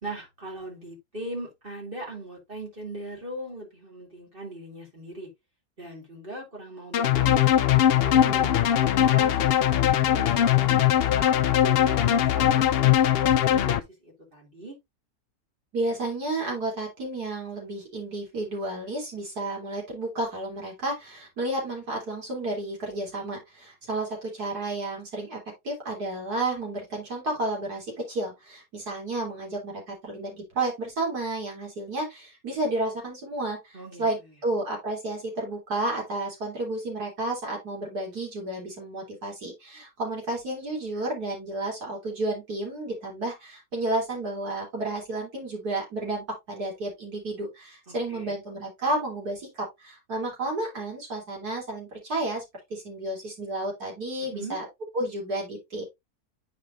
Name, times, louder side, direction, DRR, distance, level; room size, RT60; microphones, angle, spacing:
voice 1, 0.0-5.3 5.8-7.5 8.0-12.7 13.0-14.7 33.7-34.0 47.9-48.3 54.3-54.6, right 1 dB, 35° right, 3.1 m, -39 dB
sound 1, 6.9-13.8, left 11 dB, 75° left, 0.5 m, -21 dB
voice 2, 15.7-25.4 25.6-52.4 52.7-54.7 54.9-55.8, right 2 dB, 80° right, 3.8 m, -31 dB
9.1 x 5.3 x 2.5 m
omnidirectional pair, 1.6 m